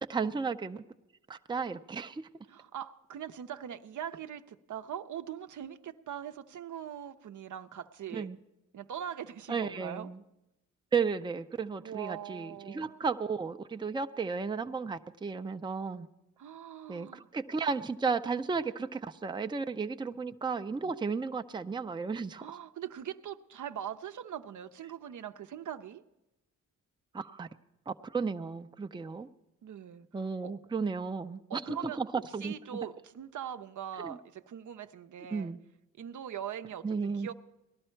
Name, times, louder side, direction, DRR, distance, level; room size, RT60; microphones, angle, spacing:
voice 1, 0.1-0.8 1.3-2.2 8.1-8.4 9.5-10.2 10.9-16.1 16.9-22.6 27.1-27.5 27.9-29.3 30.1-32.9 34.0-34.2 35.3-35.6 36.8-37.3, right 5 dB, 15° right, 8 dB, 0.5 m, -34 dB
voice 2, 2.5-8.3 8.7-10.1 11.8-12.9 16.4-17.3 22.4-26.0 29.6-30.1 30.4-30.5 31.5-32.0 32.4-35.5 36.0-37.3, right 9 dB, 70° right, 9 dB, 0.7 m, -41 dB
18.5 x 12.5 x 4.5 m, 0.92 s
cardioid pair, 65°, 31 cm